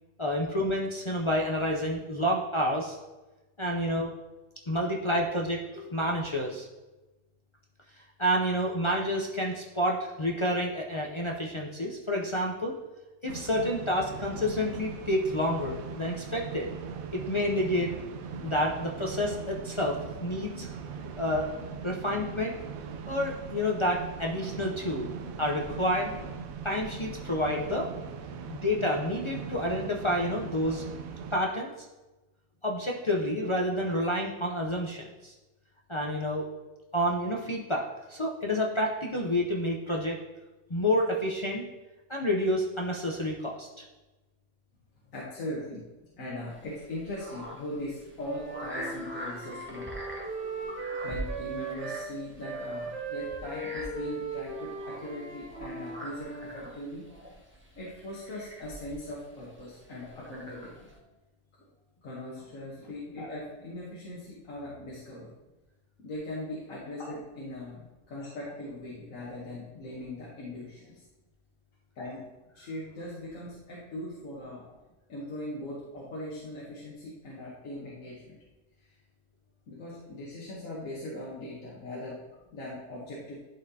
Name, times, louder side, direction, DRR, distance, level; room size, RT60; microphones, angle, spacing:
voice 1, 0.2-3.0 3.6-4.1 4.7-6.7 8.2-12.8 13.2-16.7 17.3-17.9 18.4-20.7 21.2-21.5 21.8-22.6 23.1-25.1 25.4-26.1 26.6-27.9 28.5-30.8 31.3-31.7 32.6-35.3 35.9-36.5 36.9-40.2 40.7-41.6 42.1-43.8 50.4-50.7, equal, 40° left, -2 dB, 0.4 m, -29 dB
sound 1, 13.3-31.3, right 6 dB, 80° right, 1.0 m, -40 dB
voice 2, 45.1-45.8 46.2-50.0 50.6-57.1 57.7-61.0 62.0-65.3 66.0-71.1 71.9-72.3 72.5-74.7 75.1-78.4 78.8-78.9 79.7-82.2 82.5-83.4, left 1 dB, 70° left, -6 dB, 1.6 m, -40 dB
sound 2, 46.5-61.0, equal, 10° right, 0.7 m, -44 dB
Wind instrument woodwind instrument, 48.2-52.1 52.4-56.6, right 3 dB, 45° right, 0.9 m, -38 dB
11.0 x 4.2 x 2.8 m, 1.1 s
omnidirectional pair, 1.5 m